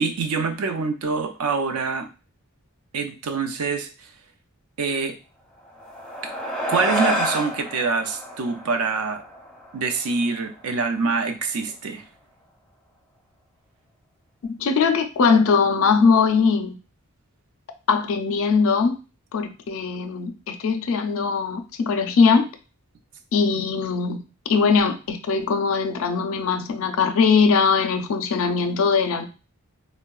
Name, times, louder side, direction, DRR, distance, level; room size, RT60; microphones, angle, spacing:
voice 1, 0.0-2.1 2.9-4.1 4.8-5.2 6.2-6.3 6.7-9.2 9.7-12.1, right 4 dB, 80° right, 7 dB, 0.5 m, -25 dB
sound 1, 5.7-10.4, equal, 5° left, 0.4 m, -29 dB
voice 2, 14.6-16.7 17.9-18.9 19.3-22.5 23.3-24.2 24.5-29.3, left 5 dB, 65° left, 8 dB, 0.4 m, -20 dB
3.6 x 2.1 x 2.2 m, 0.32 s
head